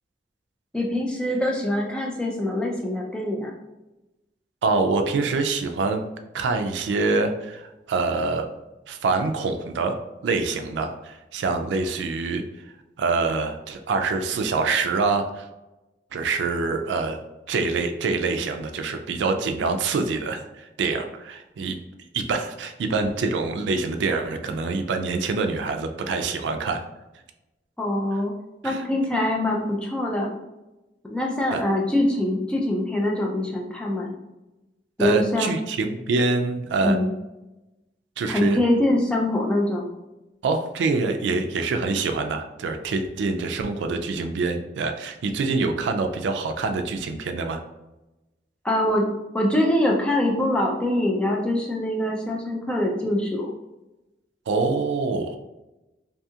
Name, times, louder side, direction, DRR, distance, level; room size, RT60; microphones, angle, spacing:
voice 1, 0.7-3.5 27.8-28.3 28.6-30.3 31.1-34.1 35.0-35.5 36.8-37.1 38.3-39.9 48.6-49.1 49.3-53.5, left 1 dB, 5° left, -2 dB, 0.3 m, -24 dB
voice 2, 4.6-6.0 6.3-8.5 8.9-10.0 10.2-12.4 13.0-15.4 16.1-17.2 17.5-21.8 22.1-26.8 28.6-28.8 31.5-31.6 35.0-37.0 38.2-38.6 40.4-47.6 54.5-55.4, right 4 dB, 90° right, 6 dB, 0.3 m, -25 dB
2.7 x 2.3 x 2.7 m, 1.0 s
head